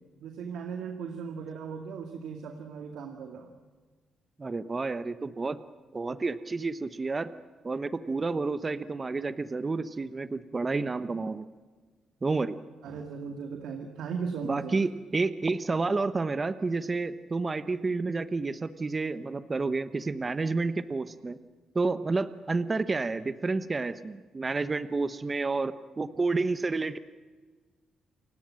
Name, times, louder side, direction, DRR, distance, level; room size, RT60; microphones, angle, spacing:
voice 1, 0.2-3.5 12.8-14.8, right 6 dB, 80° right, 4 dB, 2.2 m, -37 dB
voice 2, 4.4-5.6 5.9-7.3 7.6-11.5 12.2-12.6 14.4-21.4 21.7-27.0, right 3 dB, 25° right, 13 dB, 1.0 m, -30 dB
29.0 x 17.0 x 7.6 m, 1.4 s
cardioid pair, 90°, 0 cm